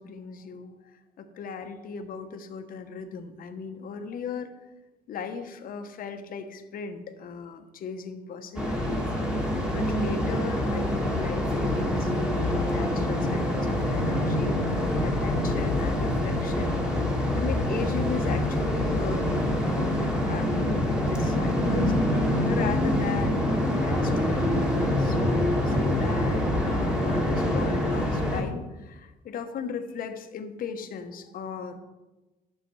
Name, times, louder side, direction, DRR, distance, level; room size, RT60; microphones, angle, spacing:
voice 1, 0.0-4.5 5.1-16.8 17.4-24.6 25.0-31.8, left 6 dB, 55° left, 7 dB, 1.2 m, -37 dB
sound 1, 8.6-28.4, left 1 dB, 5° right, 2.2 m, -25 dB
12.5 x 6.8 x 4.7 m, 1.1 s
cardioid pair, 110°, 17 cm